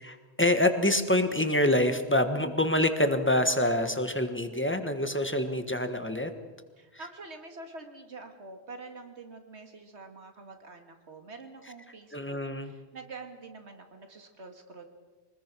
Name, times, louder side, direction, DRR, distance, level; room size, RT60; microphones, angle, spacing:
voice 1, 0.0-6.3 12.1-12.7, left 1 dB, 10° left, 8 dB, 1.5 m, -26 dB
voice 2, 6.8-14.8, right 3 dB, 85° right, 6 dB, 2.3 m, -46 dB
24.0 x 20.5 x 6.2 m, 1.3 s
omnidirectional pair, 1.1 m